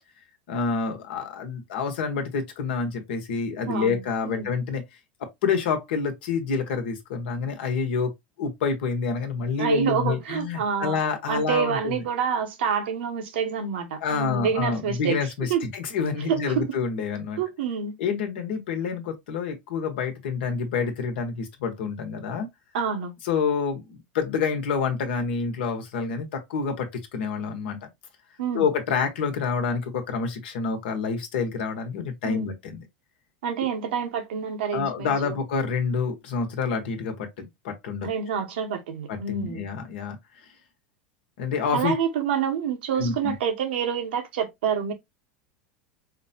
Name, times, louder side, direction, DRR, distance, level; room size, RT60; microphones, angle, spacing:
voice 1, 0.5-4.8 5.2-8.1 8.4-12.0 14.0-17.4 18.0-22.5 23.2-27.9 28.5-32.8 34.7-38.1 39.1-40.2 41.4-41.9 43.0-43.3, left 5 dB, 75° left, 1.1 m, -28 dB
voice 2, 3.7-4.5 9.6-11.0 11.3-15.2 15.5-15.7 16.3-16.7 17.4-17.9 22.7-23.1 28.4-28.7 32.2-32.5 33.4-35.4 38.0-39.6 41.7-44.9, right 7 dB, 80° right, 1.0 m, -27 dB
4.7 x 2.2 x 2.7 m
hypercardioid pair, 105°, 6 cm